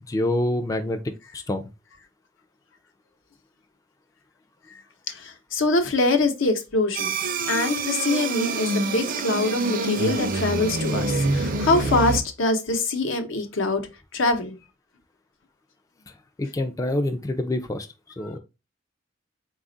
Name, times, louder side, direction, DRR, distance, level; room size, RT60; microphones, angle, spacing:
voice 1, 0.1-1.0 1.3-1.6 16.4-17.9 18.2-18.4, left 1 dB, 15° left, 0.3 m, -26 dB
voice 2, 5.1-14.6, left 2 dB, 80° left, 0.8 m, -24 dB
sound 1, 6.9-12.2, right 3 dB, 45° right, 0.5 m, -26 dB
4.1 x 2.4 x 3.8 m
head